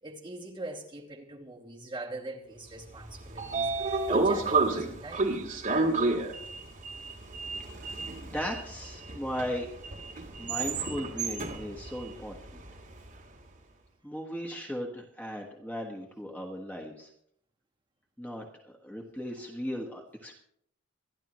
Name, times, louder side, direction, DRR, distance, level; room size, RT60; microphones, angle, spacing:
voice 1, 0.0-3.7 4.1-5.3, right 2 dB, 25° right, 2.4 m, -41 dB
Sliding door, 2.9-13.1, right 3 dB, 40° right, 2.2 m, -31 dB
voice 2, 7.7-9.7 10.4-12.6 14.0-17.1 18.2-20.4, equal, 10° left, 1.5 m, -37 dB
27.0 x 11.0 x 3.1 m
head